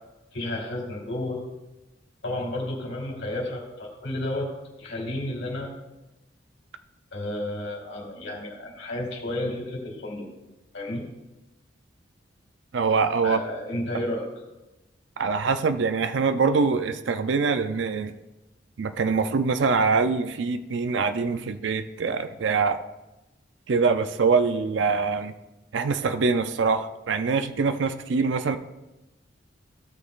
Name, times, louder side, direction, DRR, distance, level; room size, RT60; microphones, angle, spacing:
voice 1, 0.3-1.4 2.2-4.5 4.8-5.7 7.1-10.3 10.7-11.1 13.2-14.2, left 1 dB, 75° left, -2 dB, 2.5 m, -31 dB
voice 2, 12.7-13.4 15.2-18.1 18.8-22.8 23.7-25.3 25.7-28.6, right 4 dB, 70° right, 10 dB, 0.5 m, -24 dB
15.5 x 6.5 x 2.5 m, 1.0 s
head